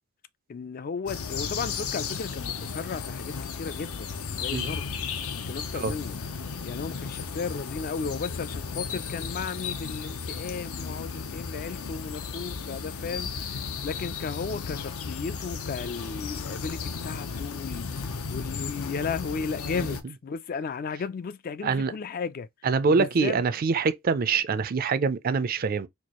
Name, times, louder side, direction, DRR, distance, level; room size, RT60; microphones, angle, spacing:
voice 1, 0.5-5.0 5.3-6.2 6.6-22.5 22.9-23.4, left 5 dB, 40° left, 0.3 m, -35 dB
sound 1, 1.1-20.0, left 5 dB, 80° left, 0.7 m, -34 dB
voice 2, 22.6-25.9, right 5 dB, 45° right, 0.4 m, -25 dB
4.5 x 2.4 x 2.9 m
head